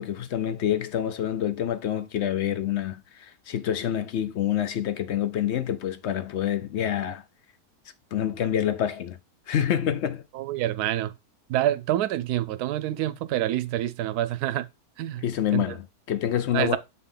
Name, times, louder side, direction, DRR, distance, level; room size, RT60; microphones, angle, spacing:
voice 1, 0.0-7.2 8.1-9.2 9.5-10.2 15.2-16.8, left 10 dB, 65° left, 0.7 m, -27 dB
voice 2, 10.3-11.1 11.5-14.7 15.0-15.2 15.5-15.6 16.5-16.8, right 13 dB, 75° right, 1.1 m, -27 dB
7.5 x 4.4 x 3.8 m
omnidirectional pair, 1.7 m